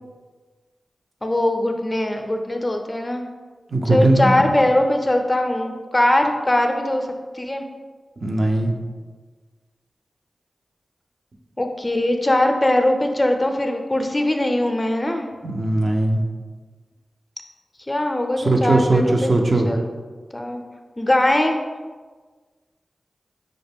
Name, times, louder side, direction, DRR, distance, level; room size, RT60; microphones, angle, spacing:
voice 1, 1.2-3.2 3.8-7.1 7.3-7.6 11.6-15.3 17.9-19.3 19.7-19.8 20.3-20.6 21.0-21.6, left 1 dB, 25° left, 4 dB, 0.5 m, -21 dB
voice 2, 3.7-4.4 8.2-8.7 15.4-16.2 18.4-19.7, right 2 dB, 60° right, 2 dB, 0.5 m, -19 dB
5.0 x 2.1 x 3.4 m, 1.4 s
cardioid pair, 40°, 0 cm